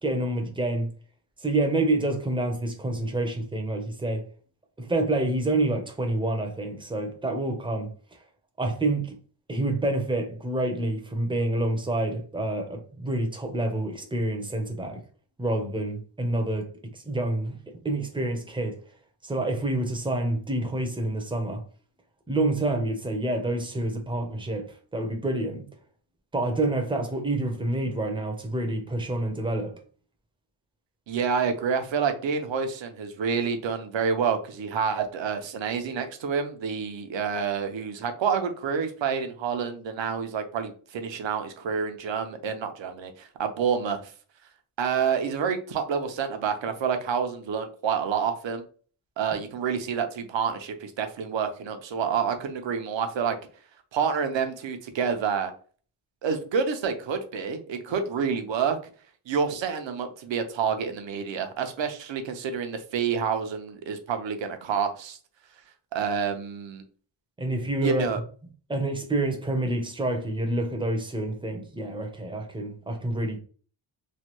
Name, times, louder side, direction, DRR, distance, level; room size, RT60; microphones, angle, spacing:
voice 1, 0.0-0.9 1.4-4.2 4.8-7.9 8.6-9.2 9.5-15.0 15.4-17.6 17.8-18.8 19.2-21.6 22.3-25.6 26.3-29.8 67.4-68.1 68.7-73.4, right 2 dB, 10° right, 0.6 m, -28 dB
voice 2, 31.1-44.1 44.8-48.6 49.2-53.4 53.9-55.5 56.2-58.8 59.3-65.2 65.9-66.8 67.8-68.2, right 6 dB, 70° right, 0.7 m, -28 dB
3.2 x 2.2 x 2.9 m
wide cardioid pair, 115°, 47 cm